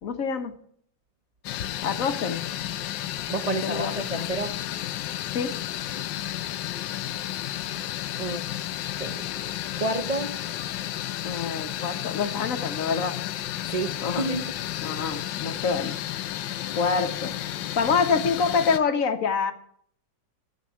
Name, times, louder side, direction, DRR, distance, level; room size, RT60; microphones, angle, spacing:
voice 1, 0.0-0.5 1.8-2.4 3.5-4.3 5.3-5.6 11.2-13.1 14.0-14.3 14.8-15.9 16.7-17.3 17.8-19.5, left 5 dB, 50° left, 1.3 m, -26 dB
sound 1, 1.4-18.8, left 13 dB, 80° left, 1.3 m, -32 dB
voice 2, 3.3-4.6 8.2-8.5 9.0-9.3 9.8-10.4 13.7-14.5 17.6-17.8, right 2 dB, 55° right, 0.4 m, -30 dB
15.0 x 5.2 x 9.3 m
omnidirectional pair, 2.0 m